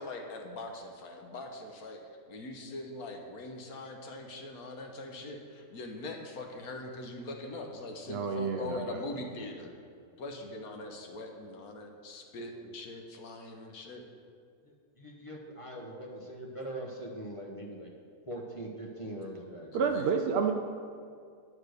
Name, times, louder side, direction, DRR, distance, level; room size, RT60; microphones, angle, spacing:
voice 1, 0.0-9.8 10.2-14.1 19.7-20.2, left 2 dB, 80° left, 3 dB, 1.5 m, -42 dB
voice 2, 8.1-9.0 19.7-20.5, right 6 dB, 65° right, 3 dB, 0.6 m, -29 dB
voice 3, 9.7-10.2 14.6-17.9 18.3-19.7, right 1 dB, 25° left, -1 dB, 0.9 m, -42 dB
9.8 x 4.8 x 6.5 m, 2.3 s
omnidirectional pair, 1.6 m